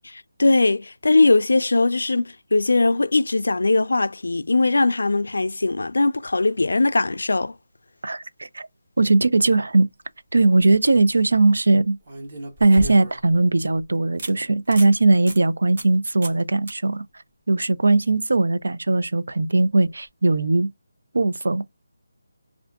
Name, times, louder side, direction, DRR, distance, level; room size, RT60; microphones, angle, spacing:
voice 1, 0.1-7.5, left 3 dB, 80° left, 0.3 m, -20 dB
voice 2, 8.0-8.7 9.0-9.9 10.3-12.0 12.6-17.0 17.5-20.7 21.1-21.6, right 2 dB, 80° right, 0.5 m, -19 dB
sound 1, 10.3-10.7 12.1-13.4 13.8-13.9 14.2-14.3 14.7-14.9 15.3-15.4 15.8-16.0 16.2-16.4 16.7-16.8 19.9-20.0, right 1 dB, 30° right, 1.0 m, -34 dB
3.6 x 2.4 x 3.5 m
figure-of-eight pair, 180°, 0 cm